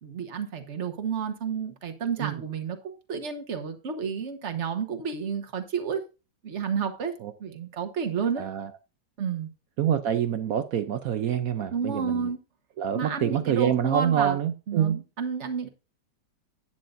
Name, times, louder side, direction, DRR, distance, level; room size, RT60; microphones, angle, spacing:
voice 1, 0.0-6.0 6.4-7.1 7.4-8.5 9.2-9.5 11.7-12.4 12.9-14.4 14.7-15.7, right 6 dB, 45° right, 1.3 m, -31 dB
voice 2, 8.4-8.7 9.8-12.3 12.8-15.0, right 9 dB, 65° right, 0.9 m, -26 dB
11.5 x 9.3 x 2.6 m
omnidirectional pair, 2.0 m